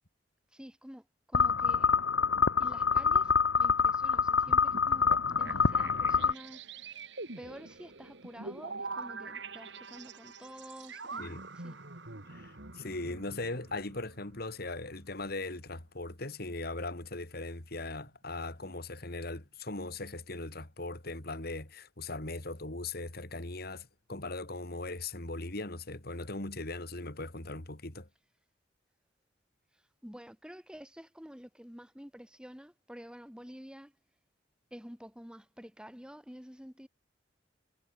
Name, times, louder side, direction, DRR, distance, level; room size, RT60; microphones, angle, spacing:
voice 1, 0.5-2.0 2.6-6.7 7.4-11.7 29.7-33.9 34.7-36.9, equal, 5° right, 2.5 m, -49 dB
sound 1, 1.3-6.3, left 5 dB, 85° left, 1.1 m, -26 dB
sound 2, 2.8-15.4 15.7-15.9 17.4-17.5 17.9-18.2 18.4-18.6, right 3 dB, 70° right, 2.9 m, -46 dB
voice 2, 12.3-28.1, left 2 dB, 55° left, 3.0 m, -39 dB
head